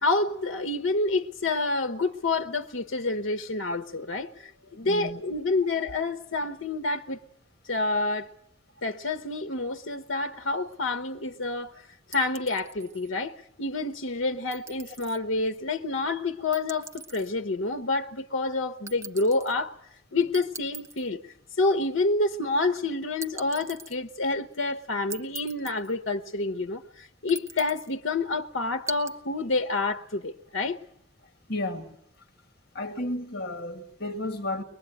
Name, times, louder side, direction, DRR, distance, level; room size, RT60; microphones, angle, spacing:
voice 1, 0.0-7.2 7.6-8.3 8.8-11.8 12.1-19.7 20.1-21.2 21.6-30.8, left 3 dB, 85° left, 1.0 m, -28 dB
voice 2, 4.8-5.2 31.5-32.0 32.7-34.6, left 1 dB, 55° left, 1.8 m, -32 dB
sound 1, 12.1-13.1 14.5-15.2 16.5-17.3 18.9-19.5 20.3-21.1 23.2-24.0 25.1-25.9 27.3-27.9 28.9-29.1, right 4 dB, 15° right, 1.3 m, -41 dB
23.5 x 21.0 x 9.1 m
head